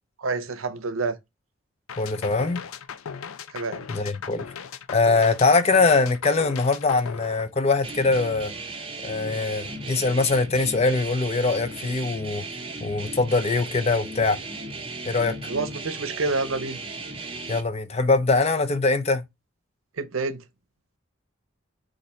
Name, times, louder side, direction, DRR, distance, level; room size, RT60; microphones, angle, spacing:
voice 1, 0.2-1.2 3.5-3.8 15.5-16.8 20.0-20.4, right 3 dB, 75° right, 0.6 m, -28 dB
sound 1, 1.9-8.1, left 7 dB, 85° left, 0.4 m, -38 dB
voice 2, 2.0-2.6 3.9-4.4 4.9-8.5 9.0-12.4 12.8-14.4 15.1-15.3 17.5-19.2, left 3 dB, 30° left, 0.5 m, -22 dB
sound 2, 7.8-17.6, right 2 dB, 25° right, 0.7 m, -36 dB
4.0 x 2.6 x 4.2 m
head